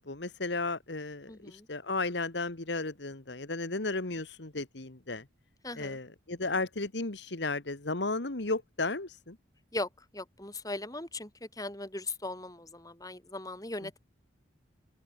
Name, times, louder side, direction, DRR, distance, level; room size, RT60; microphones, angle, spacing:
voice 1, 0.0-5.2 5.8-9.4, left 3 dB, 70° left, 1.8 m, -34 dB
voice 2, 1.3-1.7 5.6-6.0 9.7-14.0, left 2 dB, 20° left, 6.6 m, -39 dB
open air
head